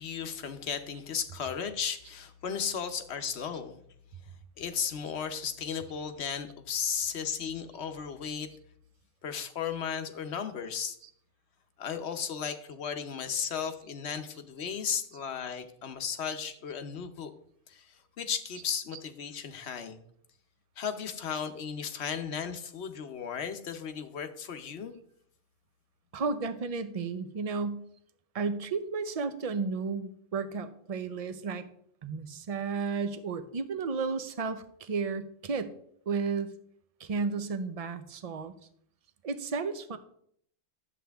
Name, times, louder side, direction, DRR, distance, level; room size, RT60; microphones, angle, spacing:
voice 1, 0.0-3.8 4.6-8.5 9.2-11.0 11.8-17.3 17.7-20.0 20.8-24.9, left 7 dB, 75° left, 9 dB, 1.1 m, -35 dB
voice 2, 26.1-27.8 28.3-31.7 32.0-35.7 36.1-36.5 37.0-38.6 39.2-40.0, right 4 dB, 40° right, 10 dB, 0.7 m, -33 dB
11.0 x 7.6 x 3.5 m, 0.67 s
omnidirectional pair, 1.1 m